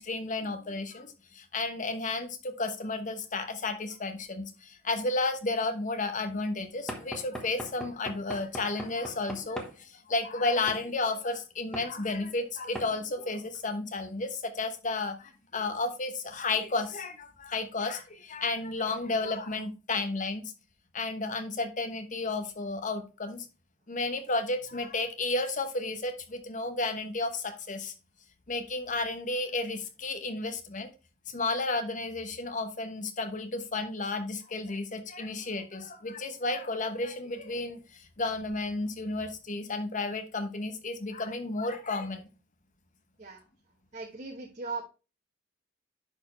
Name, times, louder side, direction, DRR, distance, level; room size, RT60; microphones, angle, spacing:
voice 1, 0.0-20.5 20.9-23.5 23.9-27.9 28.5-30.9 31.3-42.3, left 3 dB, 40° left, 8 dB, 1.0 m, -32 dB
Knock / Wood, 6.9-9.8 10.7-10.9 11.7-11.9 12.7-12.9, equal, 5° left, 1.2 m, -40 dB
voice 2, 43.9-44.8, right 4 dB, 40° right, 0 dB, 1.1 m, -38 dB
10.5 x 4.5 x 3.1 m, 0.31 s
head